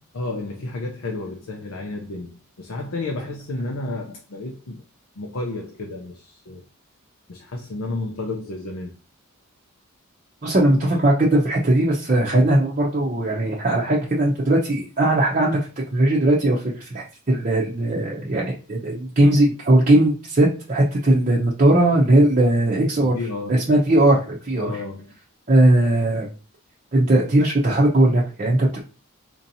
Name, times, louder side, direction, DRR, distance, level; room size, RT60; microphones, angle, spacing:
voice 1, 0.1-4.8 5.2-6.6 7.3-8.9 23.0-23.7 24.6-25.1, left 2 dB, 75° left, 0.6 m, -31 dB
voice 2, 10.4-15.6 15.9-23.1 23.5-24.7 25.5-26.3 26.9-28.8, right 1 dB, 35° right, 0.6 m, -19 dB
4.4 x 2.8 x 2.6 m
head